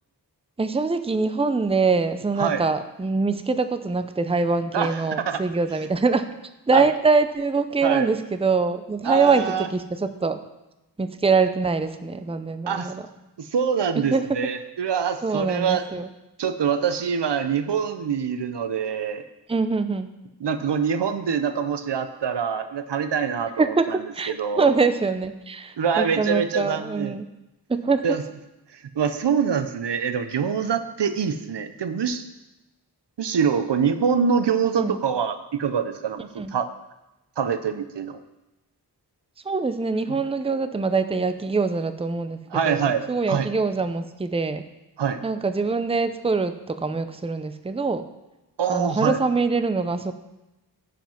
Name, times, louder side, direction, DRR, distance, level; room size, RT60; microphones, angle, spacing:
voice 1, 0.6-6.3 6.7-10.4 11.0-13.1 14.0-14.3 15.2-16.1 19.5-20.1 23.6-27.2 27.7-28.1 34.6-35.0 36.4-36.5 39.4-44.6 45.2-48.1 48.7-50.1, right 4 dB, 15° right, 10 dB, 0.6 m, -24 dB
voice 2, 9.0-9.7 12.7-12.9 13.4-15.8 16.4-19.2 20.4-24.0 24.3-24.7 25.8-27.2 28.0-28.2 28.7-32.2 33.2-36.7 37.4-38.2 42.5-43.5 45.0-45.2 48.6-49.2, right 7 dB, 75° right, 10 dB, 0.7 m, -25 dB
10.5 x 5.2 x 5.9 m, 0.98 s
wide cardioid pair, 55°, 41 cm